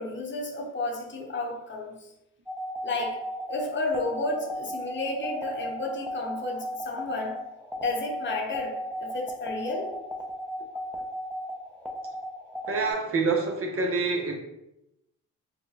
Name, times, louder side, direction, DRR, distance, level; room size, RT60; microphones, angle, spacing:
voice 1, 0.0-2.1 2.8-7.4 7.8-9.9, left 2 dB, 40° left, 0 dB, 1.0 m, -32 dB
sound 1, 2.5-12.9, equal, ahead, 0.7 m, -35 dB
voice 2, 12.7-14.4, right 3 dB, 45° right, 2 dB, 0.8 m, -26 dB
4.2 x 2.1 x 3.9 m, 0.86 s
cardioid pair, 90°, 30 cm